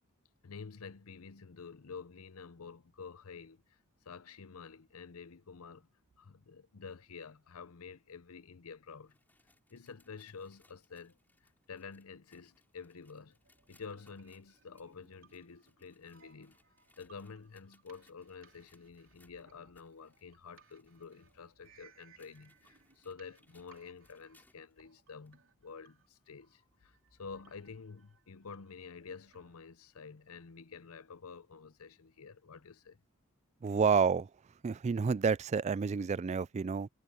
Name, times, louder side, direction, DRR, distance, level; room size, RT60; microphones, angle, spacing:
voice 1, 0.4-3.8 4.0-5.9 6.2-9.2 9.7-11.2 11.7-13.4 13.7-16.6 17.0-33.0, left 5 dB, 80° left, 0.7 m, -49 dB
sound 1, 8.9-24.8 25.3-25.4 26.1-26.2 27.1-27.2, left 2 dB, 10° left, 4.4 m, -71 dB
sound 2, 13.4-29.6, right 5 dB, 60° right, 3.3 m, -66 dB
voice 2, 33.6-34.3 34.6-36.9, right 5 dB, 30° right, 0.3 m, -29 dB
head